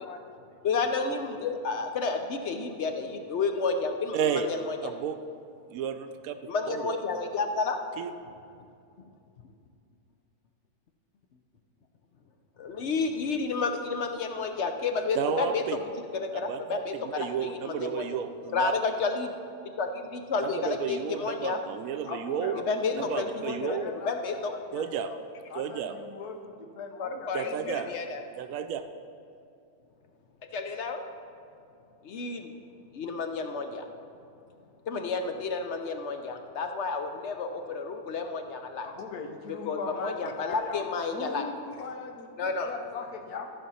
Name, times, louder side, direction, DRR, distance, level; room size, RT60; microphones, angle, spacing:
voice 1, 0.0-0.6 0.9-1.0 22.1-25.2 25.5-28.0 38.8-43.5, left 4 dB, 80° left, 5 dB, 1.4 m, -40 dB
voice 2, 0.6-4.9 6.4-7.8 12.6-15.6 16.1-18.1 18.5-19.4 19.8-21.6 22.7-23.3 23.6-24.5 27.0-28.2 30.5-31.0 32.0-32.5 32.9-33.9 34.9-38.9 39.7-41.4 42.4-42.7, left 4 dB, 60° left, 5 dB, 0.8 m, -31 dB
voice 3, 4.1-4.5 4.8-5.2 5.7-6.3 6.7-7.0 8.0-8.1 15.2-15.8 16.3-18.7 20.4-22.6 22.9-23.9 24.7-25.1 25.5-25.9 27.3-27.9 28.4-28.8, right 8 dB, 70° right, 8 dB, 0.9 m, -32 dB
13.5 x 5.3 x 5.5 m, 2.5 s
omnidirectional pair, 1.6 m